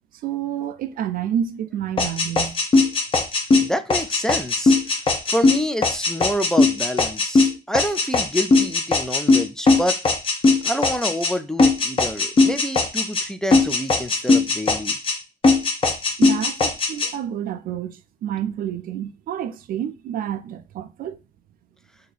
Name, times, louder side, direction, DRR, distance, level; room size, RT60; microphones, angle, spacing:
voice 1, 0.2-2.6 16.2-21.2, right 9 dB, 60° right, 0.5 m, -29 dB
sound 1, 2.0-11.3 11.6-13.3 13.5-15.2 15.4-17.1, left 3 dB, 30° left, 0.8 m, -19 dB
voice 2, 3.6-4.8 5.3-10.0 10.6-15.0, equal, 5° left, 0.3 m, -27 dB
2.8 x 2.6 x 3.9 m
cardioid pair, 110°, 17 cm